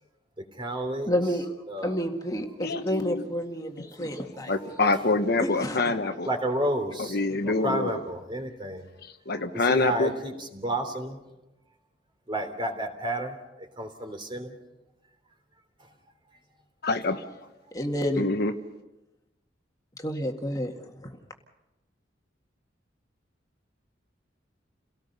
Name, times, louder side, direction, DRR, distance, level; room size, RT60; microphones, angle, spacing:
voice 1, 0.5-1.1 1.7-2.0 4.7-4.8 6.2-8.9 9.3-11.2 12.3-14.5 15.8-15.9, right 1 dB, 25° right, 5 dB, 3.2 m, -31 dB
voice 2, 1.1-1.5 1.8-4.5 5.4-5.9 17.7-18.3 20.0-20.7 21.0-21.1, equal, 20° left, 3 dB, 1.9 m, -29 dB
voice 3, 2.6-3.2 4.5-6.3 7.1-8.0 9.3-10.1 16.8-17.3 18.2-18.5, left 2 dB, 60° left, 7 dB, 1.2 m, -25 dB
29.5 x 18.0 x 5.5 m, 0.98 s
head